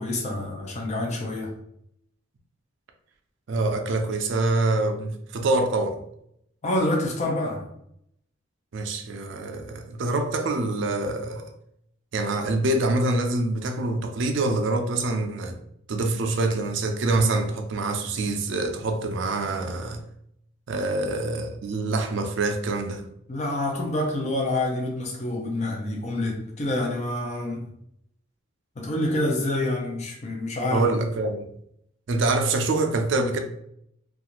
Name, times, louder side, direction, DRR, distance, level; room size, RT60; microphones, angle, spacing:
voice 1, 0.0-1.6 6.6-7.7 19.7-19.8 23.3-27.6 28.8-30.9, left 1 dB, 35° left, 0.5 m, -27 dB
voice 2, 3.5-6.0 8.7-11.5 12.1-15.6 15.9-20.0 20.7-23.0 30.7-31.5 32.1-33.4, right 2 dB, 60° right, 0.4 m, -25 dB
2.5 x 2.3 x 2.9 m
head